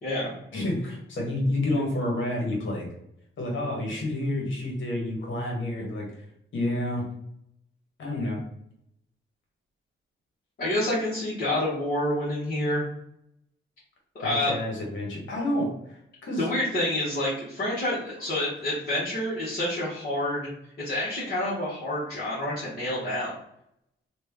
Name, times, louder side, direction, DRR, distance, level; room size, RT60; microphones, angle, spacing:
voice 1, 0.0-0.3 10.6-12.9 14.1-14.5 16.4-20.4 20.8-23.3, left 1 dB, 50° left, -9 dB, 1.4 m, -28 dB
voice 2, 0.5-2.9 3.4-6.1 6.5-7.0 8.0-8.4 14.2-16.5, left 1 dB, 70° left, -1 dB, 1.3 m, -29 dB
3.1 x 2.5 x 3.5 m, 0.76 s
cardioid pair, 75°, 20 cm